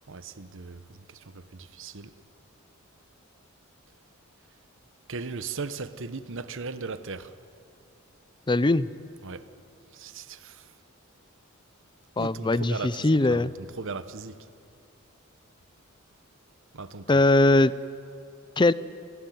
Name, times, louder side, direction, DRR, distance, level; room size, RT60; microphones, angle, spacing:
voice 1, 0.1-2.1 5.1-7.3 9.2-9.4 9.9-10.7 12.2-14.4 16.7-17.2, right 4 dB, 60° right, 1.1 m, -38 dB
voice 2, 8.5-8.9 12.2-13.5 17.1-17.7 18.6-18.7, left 2 dB, 20° left, 0.5 m, -21 dB
29.5 x 16.0 x 9.4 m
head